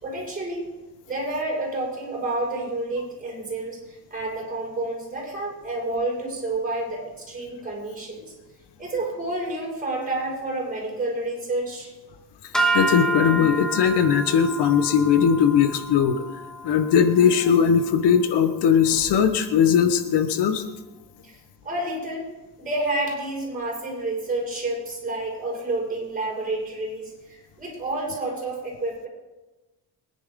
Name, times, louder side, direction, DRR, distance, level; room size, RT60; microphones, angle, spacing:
voice 1, 0.0-0.7 1.0-8.3 8.8-11.9 21.2-22.3 22.6-29.1, right 2 dB, 20° right, -3 dB, 5.8 m, -29 dB
sound 1, 12.5-18.9, right 2 dB, ahead, 1.1 m, -30 dB
voice 2, 12.7-16.2 16.6-20.6, left 7 dB, 80° left, 9 dB, 1.2 m, -19 dB
23.0 x 10.5 x 3.8 m, 1.1 s
cardioid pair, 155°, 40 cm